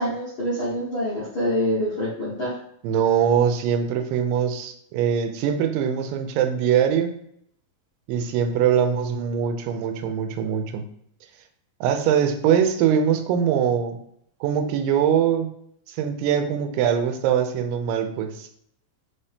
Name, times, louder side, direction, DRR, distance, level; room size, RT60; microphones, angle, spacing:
voice 1, 0.0-2.5, equal, 65° left, -9 dB, 1.2 m, -26 dB
voice 2, 2.8-7.1 8.1-10.9 11.8-14.0 14.4-15.5 15.9-18.5, right 8 dB, 90° right, 6 dB, 2.3 m, -22 dB
5.1 x 2.8 x 3.4 m, 0.71 s
omnidirectional pair, 3.8 m